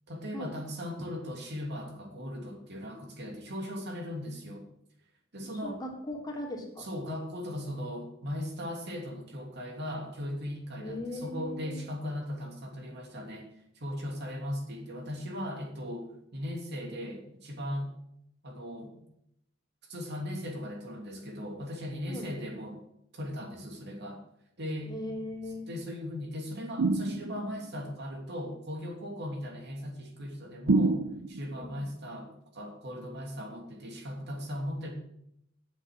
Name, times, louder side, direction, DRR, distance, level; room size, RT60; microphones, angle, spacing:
voice 1, 0.1-4.7 5.3-5.8 6.8-13.5 13.7-17.9 18.4-19.0 19.9-22.8 23.1-24.2 24.6-24.9 25.7-31.0 31.3-34.9, equal, 60° right, 1 dB, 2.9 m, -38 dB
voice 2, 5.6-6.9 10.8-11.8 22.1-22.3 24.9-25.7 31.5-31.9, left 1 dB, 20° left, -1 dB, 3.0 m, -39 dB
sound 1, 26.8-27.6 30.7-31.6, right 3 dB, 90° right, 0.7 m, -27 dB
10.0 x 7.5 x 7.9 m, 0.76 s
head